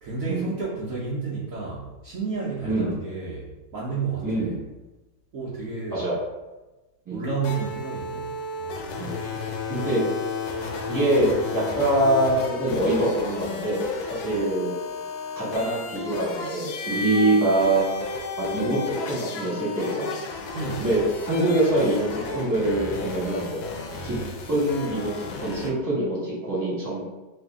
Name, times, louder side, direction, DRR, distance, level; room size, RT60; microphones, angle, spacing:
voice 1, 0.0-4.6 5.3-6.1 7.1-8.3 8.6-9.2 20.5-20.9, right 4 dB, 75° right, -7 dB, 0.7 m, -31 dB
voice 2, 2.6-3.0 4.2-4.6 5.9-6.1 7.0-7.2 9.0-9.3 9.7-10.0 10.9-14.7 15.3-17.9 18.4-20.2 20.8-24.1 24.5-27.0, right 1 dB, 15° right, -8 dB, 0.8 m, -24 dB
sound 1, 7.4-25.7, left 4 dB, 75° left, 1.3 m, -33 dB
3.2 x 2.6 x 3.5 m, 1.1 s
omnidirectional pair, 2.2 m